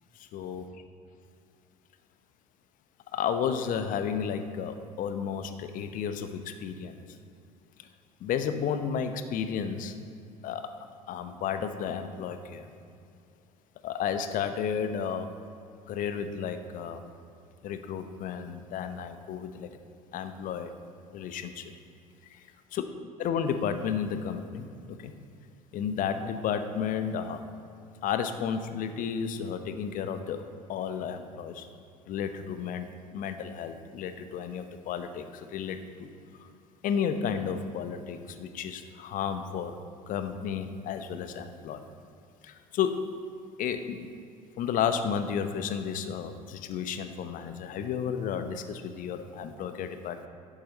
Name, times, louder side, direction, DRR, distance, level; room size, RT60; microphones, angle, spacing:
voice 1, 0.2-0.6 3.1-7.0 8.2-9.9 10.4-12.7 13.8-15.3 15.9-17.0 17.6-19.7 20.1-20.7 21.1-21.7 22.3-22.4 22.7-22.8 23.2-25.1 25.7-27.4 28.0-31.7 32.1-32.9 33.1-36.1 36.4-36.5 36.8-39.7 40.1-41.8 42.4-43.0 43.6-44.1 44.6-50.3, left 7 dB, 45° left, 9 dB, 1.0 m, -32 dB
11.0 x 7.8 x 5.3 m, 2.5 s
figure-of-eight pair, 65°, 19 cm